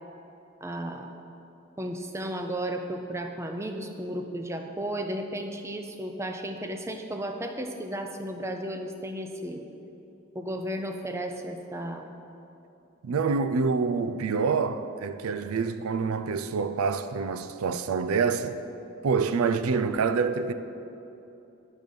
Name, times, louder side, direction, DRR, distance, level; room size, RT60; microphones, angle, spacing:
voice 1, 0.6-1.1 1.8-9.6 10.3-12.2, right 1 dB, 15° right, 0.4 m, -34 dB
voice 2, 13.0-18.6 19.0-20.5, right 5 dB, 85° right, 0.4 m, -26 dB
9.2 x 6.4 x 5.3 m
head